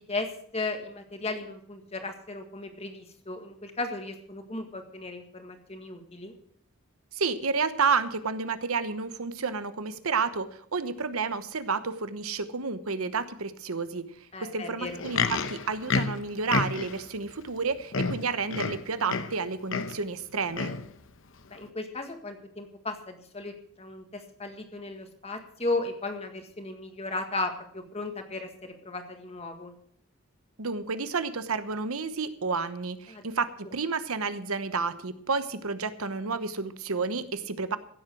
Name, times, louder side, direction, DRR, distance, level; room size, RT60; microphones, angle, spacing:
voice 1, 0.5-6.3 14.3-15.0 21.5-29.7 33.1-33.2, left 2 dB, 30° left, 6 dB, 1.7 m, -35 dB
voice 2, 7.1-10.5 10.7-14.0 14.4-20.7 30.6-37.8, right 4 dB, 85° right, 12 dB, 1.0 m, -30 dB
Livestock farm animals working animals, 14.8-17.0 17.6-17.7 17.9-19.4 19.7-20.0 20.5-20.9 21.6-21.7, left 4 dB, 65° left, 0.9 m, -30 dB
16.0 x 7.7 x 6.4 m, 0.65 s
head